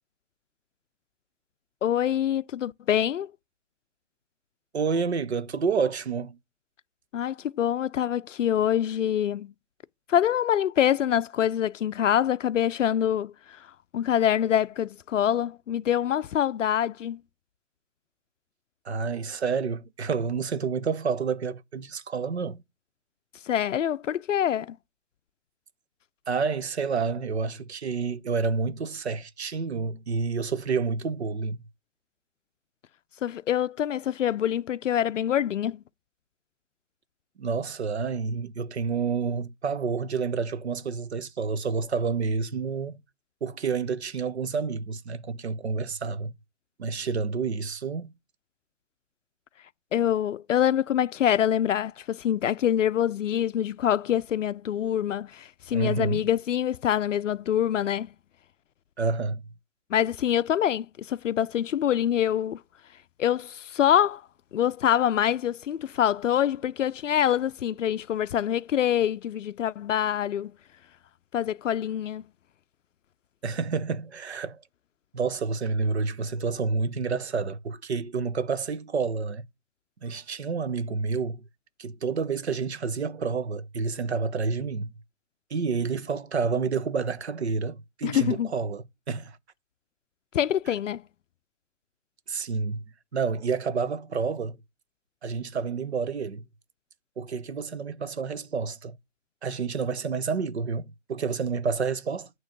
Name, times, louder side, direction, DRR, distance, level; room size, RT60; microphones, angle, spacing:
voice 1, 1.8-3.3 7.1-9.5 10.1-13.7 13.9-17.2 23.4-24.8 33.2-35.8 49.9-58.1 59.9-62.6 63.2-64.2 64.5-70.5 71.3-72.2 88.0-88.5 90.3-91.0, left 10 dB, 85° left, 0.5 m, -25 dB
voice 2, 4.7-6.4 18.8-22.6 26.3-31.6 37.4-43.0 43.4-46.3 46.8-48.1 55.7-56.2 59.0-59.4 73.4-74.6 75.1-79.5 80.0-81.4 81.8-84.9 85.5-89.4 92.3-92.8 93.1-94.6 95.2-96.4 97.2-99.0 99.4-102.3, right 5 dB, 60° right, 0.8 m, -29 dB
9.0 x 3.0 x 6.5 m
hypercardioid pair, 175°, 37 cm